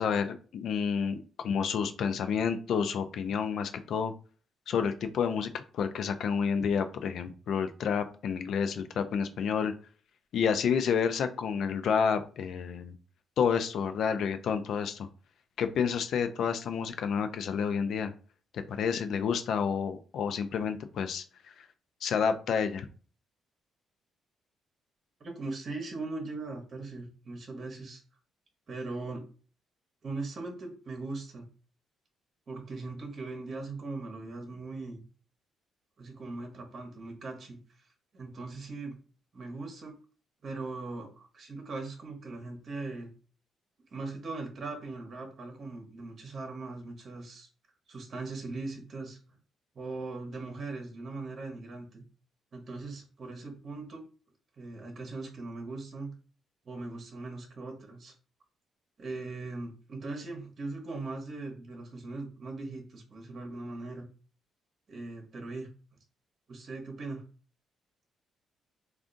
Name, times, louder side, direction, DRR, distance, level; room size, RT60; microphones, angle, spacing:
voice 1, 0.0-4.1 4.7-9.7 10.3-12.9 13.4-15.1 15.6-18.1 18.5-21.2 21.6-21.7 22.0-22.9, left 6 dB, 70° left, 9 dB, 0.4 m, -29 dB
voice 2, 25.2-28.0 28.7-29.2 30.0-31.5 32.5-35.0 36.0-37.6 38.1-38.9 39.3-39.9 40.4-43.1 43.9-47.5 47.9-49.2 49.7-52.0 52.5-54.0 54.6-56.1 56.7-58.1 59.0-64.1 64.9-65.7 66.5-67.2, right 3 dB, 45° right, 2 dB, 0.9 m, -40 dB
3.6 x 2.4 x 2.5 m, 0.38 s
cardioid pair, 90°, 0 cm